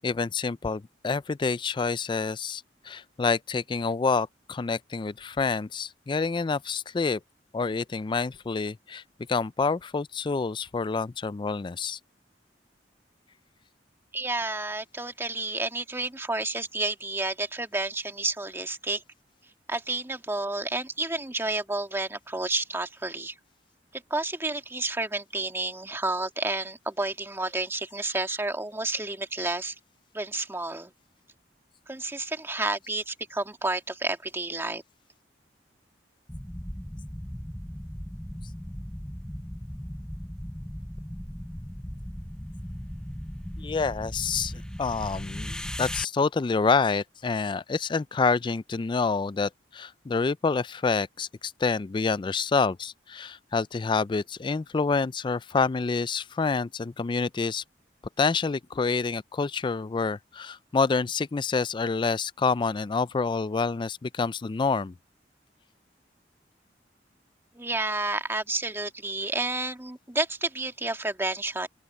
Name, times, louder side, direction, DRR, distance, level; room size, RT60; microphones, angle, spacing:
voice 1, 0.0-7.2 7.5-9.0 9.3-12.0 43.6-57.6 58.2-64.9, left 4 dB, 30° left, 0.4 m, -27 dB
voice 2, 14.1-19.0 19.7-23.3 23.9-29.7 30.1-30.9 31.9-34.8 67.5-71.7, right 2 dB, 15° right, 1.9 m, -30 dB
sound 1, 36.3-46.0, equal, 5° left, 0.7 m, -37 dB
open air
head